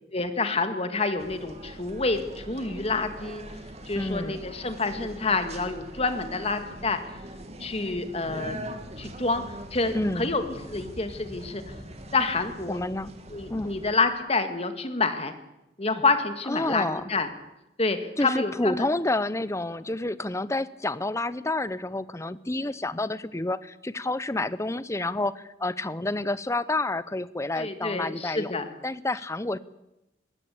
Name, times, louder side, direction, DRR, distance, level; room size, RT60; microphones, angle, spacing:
voice 1, 0.1-3.4 3.9-7.0 7.6-8.6 9.0-10.4 10.7-11.7 12.1-12.8 13.3-15.3 15.8-17.3 17.8-18.9 27.6-28.7, left 3 dB, 35° left, 9 dB, 2.0 m, -28 dB
sound 1, 1.2-13.9, right 1 dB, 35° right, 2.6 m, -42 dB
voice 2, 3.9-4.4 9.9-10.3 12.7-13.1 13.5-13.8 16.5-17.0 18.2-28.5 28.8-29.6, left 2 dB, 15° left, 17 dB, 0.7 m, -29 dB
21.0 x 17.0 x 8.4 m, 0.92 s
head